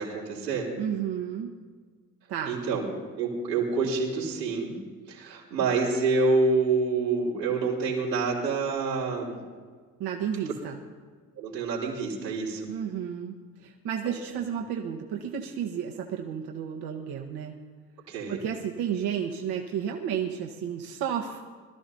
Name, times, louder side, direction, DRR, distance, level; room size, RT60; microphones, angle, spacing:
voice 1, 0.0-0.7 2.5-2.8 3.2-4.7 5.1-9.4 11.4-12.7 14.1-14.2 18.1-18.4, right 4 dB, 80° right, -4 dB, 3.6 m, -27 dB
voice 2, 0.8-1.5 2.3-2.6 10.0-10.8 12.7-17.5 18.3-21.4, right 8 dB, 50° right, 1 dB, 1.4 m, -32 dB
22.5 x 14.0 x 2.8 m, 1.5 s
figure-of-eight pair, 55°, 49 cm